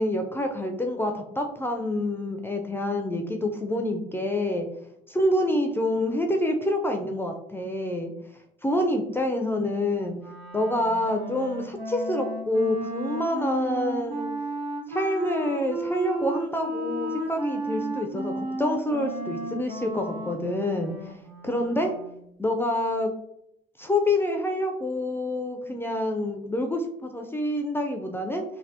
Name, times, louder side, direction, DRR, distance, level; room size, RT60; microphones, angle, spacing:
voice 1, 0.0-4.7 5.1-8.1 8.6-10.2 10.5-14.3 14.9-21.1 21.4-21.9 22.4-23.1 23.8-28.4, left 1 dB, 10° left, 4 dB, 0.4 m, -27 dB
Wind instrument woodwind instrument, 10.2-22.2, right 1 dB, 75° right, 1.1 m, -34 dB
3.3 x 2.1 x 2.7 m, 0.76 s
supercardioid pair, 75°, 20 cm